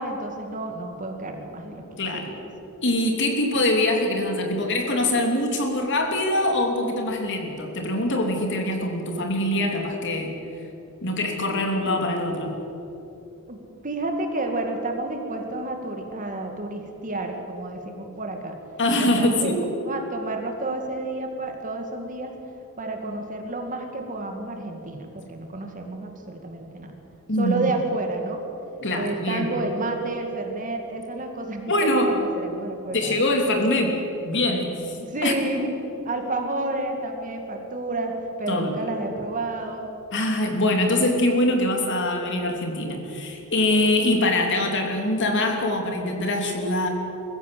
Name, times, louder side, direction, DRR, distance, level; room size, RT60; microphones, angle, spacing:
voice 1, 0.0-2.5 13.5-13.6 13.8-18.6 18.9-19.5 19.8-22.3 22.8-27.0 27.4-28.4 29.0-33.2 33.6-33.8 35.0-35.7 36.1-39.9, right 2 dB, 35° right, 4 dB, 2.3 m, -30 dB
voice 2, 2.0-2.3 2.8-10.3 11.0-12.5 18.8-19.6 27.3-27.6 28.8-29.7 31.7-32.1 32.9-33.9 34.3-35.0 35.2-35.3 38.5-38.7 40.1-46.9, left 1 dB, 55° left, 2 dB, 3.0 m, -23 dB
23.0 x 15.0 x 7.7 m, 3.0 s
head